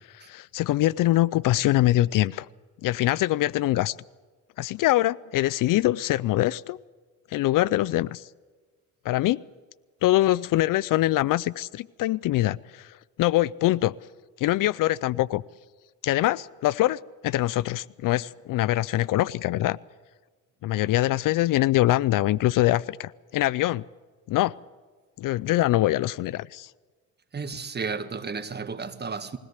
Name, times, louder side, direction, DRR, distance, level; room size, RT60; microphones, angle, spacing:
voice 1, 0.1-2.5 2.8-4.0 4.6-6.8 7.3-8.2 9.1-9.4 10.0-13.9 14.4-15.4 16.0-19.8 20.6-23.8 24.3-24.5 25.2-26.7, left 15 dB, 60° left, 0.5 m, -24 dB
voice 2, 27.3-29.4, right 5 dB, 30° right, 1.5 m, -33 dB
21.5 x 17.5 x 8.1 m
cardioid pair, 95°, 36 cm